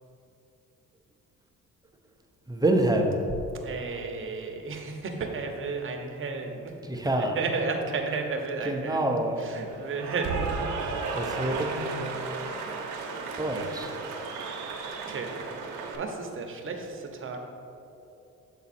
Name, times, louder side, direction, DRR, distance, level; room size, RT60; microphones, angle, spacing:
voice 1, 2.5-3.2 6.9-7.4 8.6-9.5 11.1-12.0 13.4-13.9, right 1 dB, 15° right, 3 dB, 0.7 m, -26 dB
voice 2, 3.6-6.7 7.0-9.1 9.4-12.5 13.1-13.4 15.1-15.3 15.9-17.4, right 4 dB, 45° right, 3 dB, 0.9 m, -34 dB
Cheering / Applause, 9.7-16.0, right 4 dB, 85° right, 0.8 m, -34 dB
7.1 x 4.1 x 4.2 m, 2.8 s
cardioid pair, 90°, 30 cm